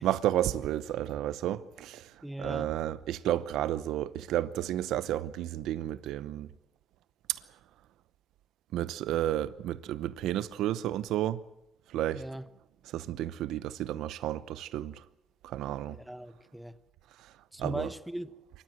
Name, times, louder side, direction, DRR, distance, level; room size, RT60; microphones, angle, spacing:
voice 1, 0.0-6.5 7.3-7.4 8.7-11.4 11.9-12.2 12.9-15.0 15.4-16.0 17.2-17.3 17.6-17.9, right 12 dB, 85° right, 0.8 m, -32 dB
voice 2, 2.2-2.7 12.1-12.4 15.9-16.8 17.5-18.3, right 1 dB, 5° right, 1.0 m, -39 dB
27.0 x 14.5 x 7.7 m
cardioid pair, 90°, 0 cm